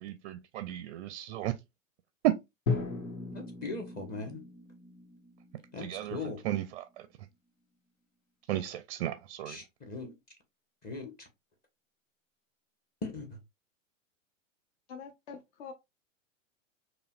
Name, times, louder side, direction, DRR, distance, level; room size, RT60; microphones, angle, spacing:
voice 1, 0.0-1.5 2.2-2.3 5.8-6.2 6.4-7.1 8.5-9.6, right 13 dB, 45° right, 0.4 m, -33 dB
Drum, 2.7-6.7, left 4 dB, 80° left, 1.1 m, -37 dB
voice 2, 3.3-4.4 5.7-6.4 9.5-10.1 10.8-11.3 13.0-13.4, left 3 dB, 25° left, 1.0 m, -39 dB
voice 3, 14.9-15.7, left 6 dB, 50° left, 0.7 m, -45 dB
5.3 x 2.2 x 2.3 m
figure-of-eight pair, 100°, 39 cm